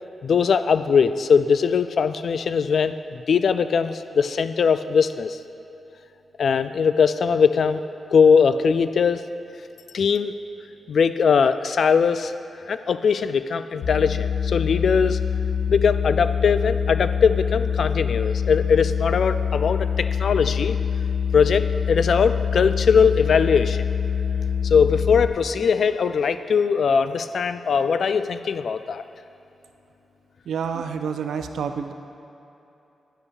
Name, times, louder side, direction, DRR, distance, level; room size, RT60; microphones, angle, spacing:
voice 1, 0.2-5.4 6.4-7.8 8.1-9.2 9.9-10.3 10.9-12.3 12.7-15.2 15.7-20.8 21.3-23.8 24.6-29.0, left 6 dB, 70° left, 12 dB, 0.3 m, -20 dB
sound 1, 13.8-25.3, left 7 dB, 85° left, 0.7 m, -25 dB
voice 2, 30.5-31.9, right 6 dB, 80° right, 7 dB, 0.4 m, -28 dB
11.5 x 9.7 x 2.4 m, 2.9 s
supercardioid pair, 50°, 0 cm